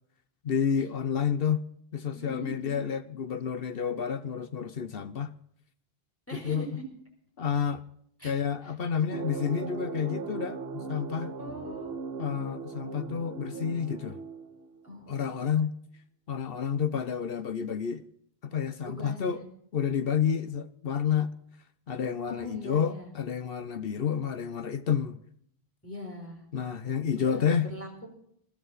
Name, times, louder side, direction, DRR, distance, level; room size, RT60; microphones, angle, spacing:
voice 1, 0.4-1.6 1.9-5.3 6.4-6.7 7.4-7.8 8.2-11.3 12.2-14.2 15.1-15.7 16.3-18.0 18.4-19.4 19.7-21.3 21.9-25.2 26.5-27.7, left 7 dB, 65° left, 1.0 m, -30 dB
voice 2, 2.2-2.8 6.3-6.7 8.2-8.3 8.6-8.7 11.4-11.9 14.8-15.3 18.9-19.4 22.3-23.1 25.8-26.4 27.2-28.1, equal, 15° left, 4.1 m, -41 dB
sound 1, 9.1-14.9, right 4 dB, 70° right, 1.4 m, -38 dB
20.5 x 13.5 x 4.1 m
omnidirectional pair, 1.1 m